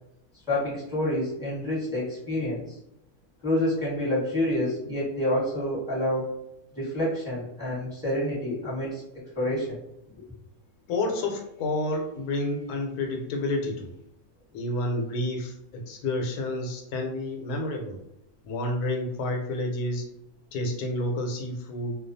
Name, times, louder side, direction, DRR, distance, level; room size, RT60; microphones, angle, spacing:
voice 1, 0.5-2.8 3.4-6.3 6.7-9.8, left 1 dB, 5° right, -9 dB, 1.0 m, -28 dB
voice 2, 10.9-13.9 14.5-18.0 18.4-20.0 20.5-22.0, left 1 dB, 85° left, 2 dB, 1.1 m, -29 dB
2.3 x 2.3 x 2.5 m, 0.83 s
omnidirectional pair, 1.6 m